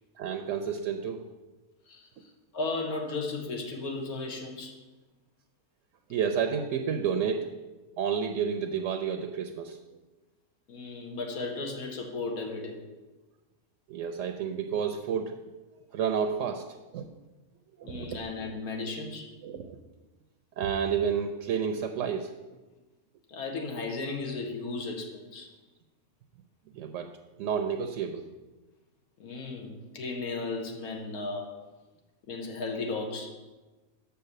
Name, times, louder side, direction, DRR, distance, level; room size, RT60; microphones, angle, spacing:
voice 1, 0.2-1.2 6.1-7.5 8.0-9.8 13.9-15.4 15.9-16.7 16.9-17.1 17.8-18.2 19.4-19.8 20.6-22.3 26.8-27.1 27.4-28.2, right 7 dB, 65° right, 6 dB, 0.9 m, -30 dB
voice 2, 2.5-4.7 10.7-12.8 17.8-19.3 23.3-25.5 29.2-31.6 32.3-33.3, left 3 dB, 80° left, 2 dB, 1.6 m, -35 dB
6.8 x 5.7 x 6.6 m, 1.2 s
omnidirectional pair, 1.5 m